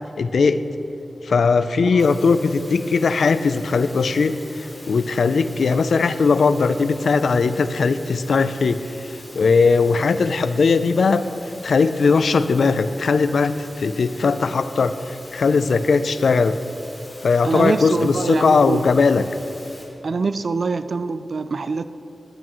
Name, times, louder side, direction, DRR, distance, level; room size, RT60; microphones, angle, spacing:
voice 1, 0.2-0.6 1.2-8.8 9.3-11.2 11.6-16.6 17.2-19.2, left 4 dB, 80° left, 12 dB, 0.4 m, -19 dB
sound 1, 2.0-19.8, left 1 dB, 25° left, 2.7 m, -43 dB
voice 2, 17.4-18.8 20.0-21.9, right 4 dB, 55° right, 12 dB, 0.4 m, -24 dB
14.5 x 11.0 x 3.1 m, 3.0 s
wide cardioid pair, 125°, 0 cm